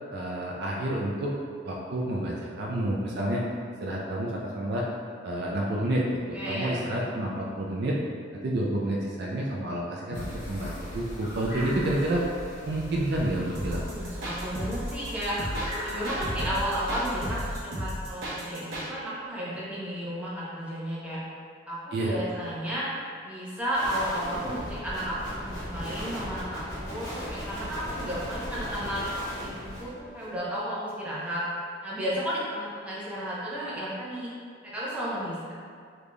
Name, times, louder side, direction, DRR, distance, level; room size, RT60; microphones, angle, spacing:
voice 1, 0.1-1.3 1.6-3.5 3.8-4.8 5.2-8.0 8.3-12.2 12.7-14.1 21.9-22.2, right 1 dB, 55° right, -3 dB, 0.4 m, -29 dB
voice 2, 6.3-7.0 13.9-15.3 15.8-21.2 21.7-22.8 23.2-31.4 31.8-34.3 34.6-35.5, equal, 5° right, -9 dB, 0.7 m, -33 dB
sound 1, 10.1-17.6, equal, 40° left, 1.0 m, -39 dB
sound 2, 13.5-18.9, equal, 90° right, 0.9 m, -34 dB
sound 3, 23.7-30.4, equal, 20° left, 1.3 m, -37 dB
3.8 x 3.3 x 2.3 m, 2.2 s
head